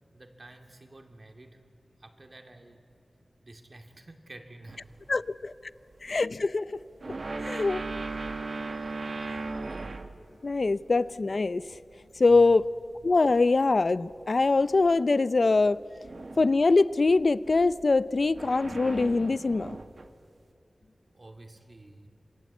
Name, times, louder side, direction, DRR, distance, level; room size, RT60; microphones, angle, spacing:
voice 1, 0.1-1.6 2.0-2.9 3.4-5.2 5.7-5.9 12.3-12.5 15.9-16.0 21.1-22.1, right 2 dB, 45° right, 4 dB, 2.7 m, -50 dB
sound 1, 4.7-4.9 6.2-6.3 7.0-10.3 10.5-11.5 12.0-13.4 13.8-14.2 14.7-14.9 16.0-16.8 17.2-20.1, right 3 dB, 65° right, 1.3 m, -37 dB
voice 2, 5.1-5.5 6.0-6.8 7.1-7.8 10.4-11.6 12.2-12.7 13.0-15.8 16.4-19.8, left 3 dB, 60° left, 16 dB, 0.6 m, -23 dB
27.0 x 22.5 x 8.4 m, 2.6 s
wide cardioid pair, 55°, 0 cm